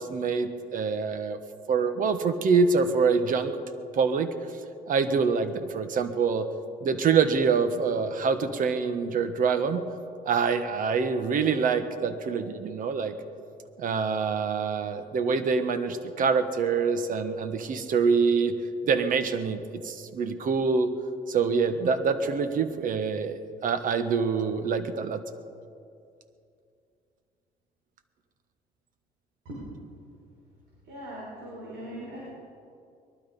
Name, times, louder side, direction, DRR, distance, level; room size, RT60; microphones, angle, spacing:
voice 1, 0.0-1.4 1.7-3.6 3.9-4.3 4.9-6.5 6.8-9.8 10.3-13.1 13.8-18.5 18.8-20.9 21.3-25.2, right 5 dB, 55° right, 10 dB, 1.3 m, -25 dB
voice 2, 30.8-32.2, right 1 dB, 75° right, -6 dB, 5.1 m, -40 dB
21.0 x 12.0 x 5.3 m, 2.5 s
cardioid pair, 110°, 17 cm